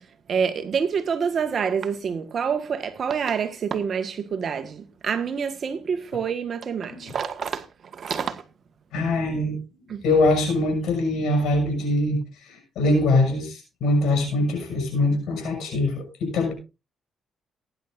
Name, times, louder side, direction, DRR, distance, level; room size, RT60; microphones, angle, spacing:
voice 1, 0.3-7.6 7.9-8.4 9.9-10.0, right 6 dB, 55° right, 1.6 m, -27 dB
voice 2, 8.9-9.6 10.0-12.2 12.8-16.5, left 2 dB, 80° left, 6.5 m, -22 dB
18.5 x 10.5 x 2.6 m
cardioid pair, 90°, 0 cm